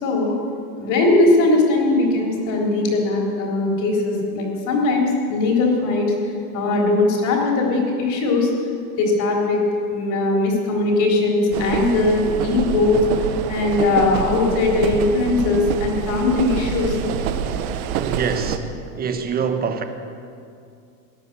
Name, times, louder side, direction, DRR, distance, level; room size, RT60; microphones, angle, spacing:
voice 1, 0.0-0.4 0.8-6.1 6.5-8.5 9.0-9.6 9.9-13.0 13.5-17.0, left 2 dB, 40° left, 0 dB, 3.7 m, -19 dB
sound 1, 11.5-18.6, right 9 dB, 65° right, 1.3 m, -26 dB
voice 2, 18.0-18.7 19.0-19.8, right 6 dB, 20° right, 7 dB, 1.1 m, -24 dB
18.0 x 11.0 x 6.9 m, 2.4 s
supercardioid pair, 150°, 46 cm